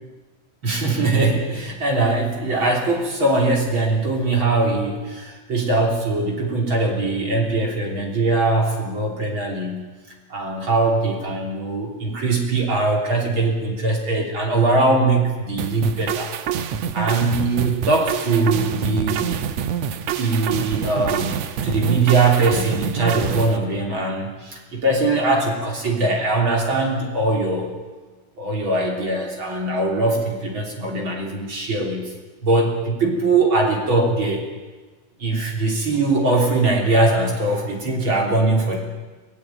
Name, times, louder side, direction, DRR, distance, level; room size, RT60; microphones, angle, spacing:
voice 1, 0.6-9.9 10.3-16.3 16.9-19.3 20.2-27.8 28.4-32.2 32.4-34.5 35.2-38.8, right 2 dB, 45° right, 1 dB, 3.9 m, -21 dB
sound 1, 15.6-23.6, right 8 dB, 75° right, 2.3 m, -26 dB
22.5 x 18.5 x 9.1 m, 1.3 s
omnidirectional pair, 3.3 m